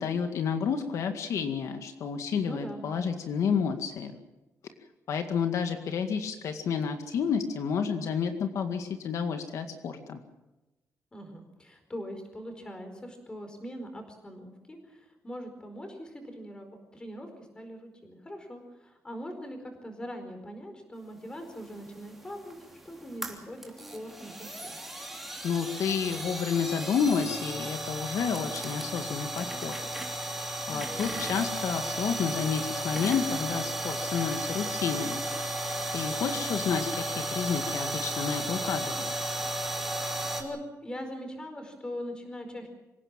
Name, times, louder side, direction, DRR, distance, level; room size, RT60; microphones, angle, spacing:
voice 1, 0.0-4.2 5.1-10.2 25.4-29.8 30.1-30.2 30.7-35.2 35.9-39.1, left 6 dB, 70° left, 6 dB, 2.0 m, -30 dB
voice 2, 2.4-2.9 11.1-17.3 17.5-24.8 30.7-31.1 40.0-42.7, equal, 15° left, 5 dB, 4.7 m, -42 dB
sound 1, 21.6-40.4, right 1 dB, 5° right, 3.2 m, -34 dB
26.0 x 17.0 x 7.5 m, 1.0 s
wide cardioid pair, 180°, 6 cm